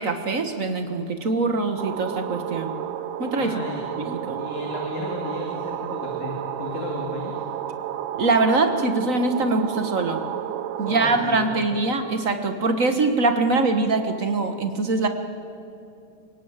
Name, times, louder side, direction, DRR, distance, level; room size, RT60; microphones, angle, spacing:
voice 1, 0.0-2.8 3.2-3.6 4.0-4.4 8.2-10.2 10.8-15.1, right 3 dB, 55° right, 6 dB, 0.9 m, -23 dB
sound 1, 1.8-11.3, right 11 dB, 85° right, 2.6 m, -32 dB
voice 2, 3.4-3.8 4.4-7.3 10.8-11.8, left 3 dB, 70° left, 0 dB, 3.9 m, -34 dB
28.0 x 18.0 x 8.9 m, 2.6 s
omnidirectional pair, 3.6 m